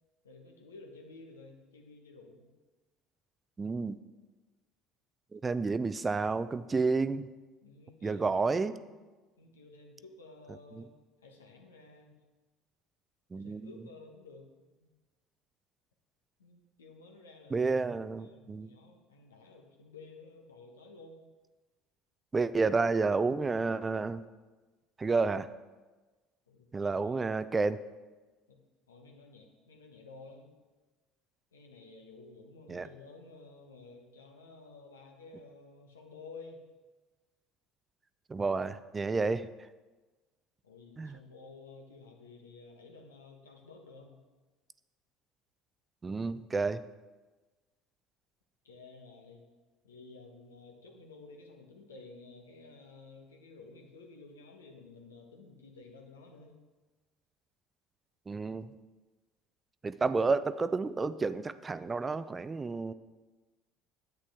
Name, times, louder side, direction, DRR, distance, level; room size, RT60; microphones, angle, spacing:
voice 1, 0.2-2.5 7.6-9.0 9.4-10.9 11.2-12.1 13.3-14.5 14.8-14.9 16.4-17.7 18.2-21.3 26.5-27.2 28.5-28.6 28.9-30.5 31.5-36.6 40.6-44.2 48.6-49.4 49.8-56.5, left 3 dB, 90° left, 2 dB, 1.2 m, -53 dB
voice 2, 3.6-4.0 5.3-7.3 8.0-8.7 13.3-13.7 17.5-18.7 22.3-24.2 25.0-25.5 26.7-27.8 32.7-32.9 38.3-39.5 41.0-41.2 46.0-46.8 58.3-58.7 59.8-62.9, right 4 dB, 25° right, 15 dB, 0.4 m, -30 dB
9.9 x 8.1 x 3.5 m, 1.2 s
hypercardioid pair, 70°, 0 cm